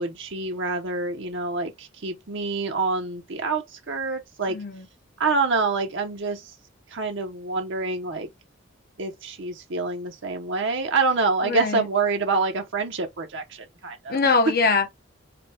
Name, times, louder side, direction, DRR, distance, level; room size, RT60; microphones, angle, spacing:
voice 1, 0.0-4.6 5.2-6.6 6.9-8.3 9.0-14.3, right 3 dB, 65° right, 0.8 m, -27 dB
voice 2, 4.5-4.9 11.4-11.9 14.1-14.9, left 4 dB, 50° left, 0.7 m, -22 dB
5.1 x 2.3 x 4.2 m
head